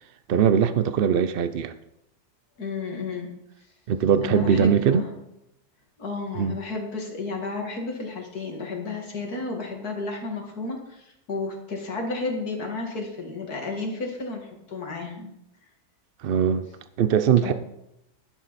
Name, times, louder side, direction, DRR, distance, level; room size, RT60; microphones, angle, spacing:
voice 1, 0.3-1.7 3.9-5.0 6.4-6.6 16.2-16.7 17.0-17.5, right 8 dB, 70° right, 0.5 m, -21 dB
voice 2, 2.6-3.4 4.2-5.2 6.0-15.3 17.4-17.5, left 3 dB, 75° left, 2.6 m, -32 dB
12.0 x 11.5 x 4.1 m
omnidirectional pair, 1.7 m